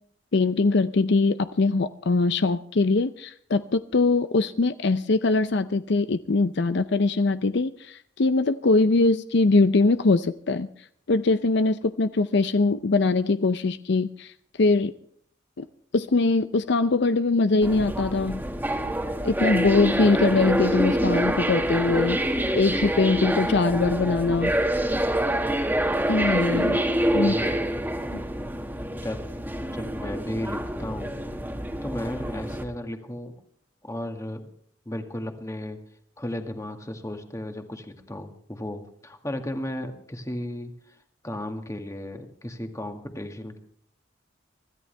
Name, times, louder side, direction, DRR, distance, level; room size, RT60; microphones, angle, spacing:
voice 1, 0.3-10.7 11.1-14.3 14.6-14.9 15.6-15.7 15.9-18.4 19.2-22.2 22.5-24.5 26.1-26.8 27.1-27.4 28.1-28.2, left 3 dB, 60° left, 11 dB, 0.6 m, -22 dB
sound 1, 17.6-32.6, right 1 dB, 10° right, 1.8 m, -26 dB
voice 2, 27.1-27.6 28.9-29.2 29.7-31.2 31.8-33.3 33.8-34.4 34.9-35.8 36.2-41.0 41.2-43.6, left 1 dB, 15° left, 5 dB, 1.9 m, -34 dB
25.0 x 14.0 x 3.4 m, 0.62 s
head